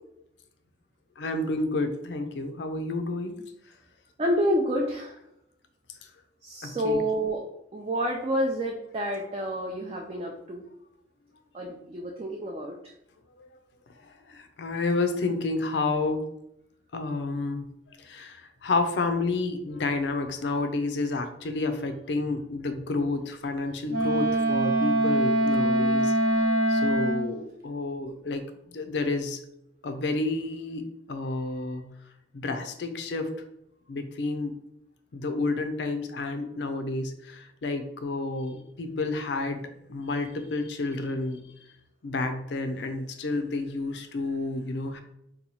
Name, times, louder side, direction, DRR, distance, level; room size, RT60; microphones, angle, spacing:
voice 1, 1.2-3.3 6.6-7.0 13.4-13.5 14.0-16.3 16.9-17.7 18.0-26.4 26.7-29.4 29.8-31.9 32.3-33.3 33.9-34.6 35.1-41.5 42.0-45.0, left 3 dB, 75° left, 7 dB, 0.5 m, -30 dB
voice 2, 4.2-5.1 6.4-7.4 7.7-10.6 11.5-12.8, equal, 30° right, 1 dB, 0.4 m, -28 dB
Wind instrument woodwind instrument, 23.9-27.4, right 1 dB, 60° right, 0.7 m, -23 dB
2.8 x 2.2 x 4.0 m, 0.79 s
head